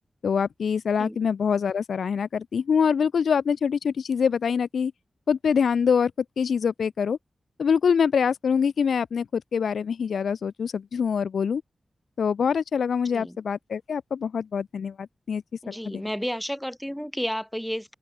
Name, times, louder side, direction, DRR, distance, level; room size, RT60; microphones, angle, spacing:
voice 1, 0.2-4.9 5.3-6.1 6.4-7.2 7.6-11.6 12.2-16.0, left 6 dB, 85° left, 1.3 m, -25 dB
voice 2, 15.6-17.9, equal, 5° left, 3.0 m, -32 dB
open air
cardioid pair, 45°, 0 cm